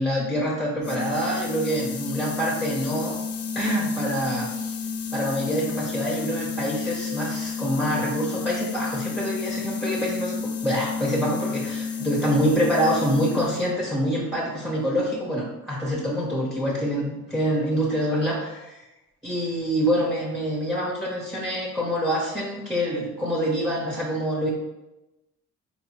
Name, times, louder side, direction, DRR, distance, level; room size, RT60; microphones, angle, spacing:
voice 1, 0.0-3.2 3.5-4.8 5.1-10.4 10.6-18.8 19.2-24.5, equal, ahead, -3 dB, 0.7 m, -26 dB
sound 1, 0.8-13.7, left 5 dB, 55° left, 0.5 m, -31 dB
4.2 x 2.6 x 3.0 m, 1.0 s
cardioid pair, 90°, 30 cm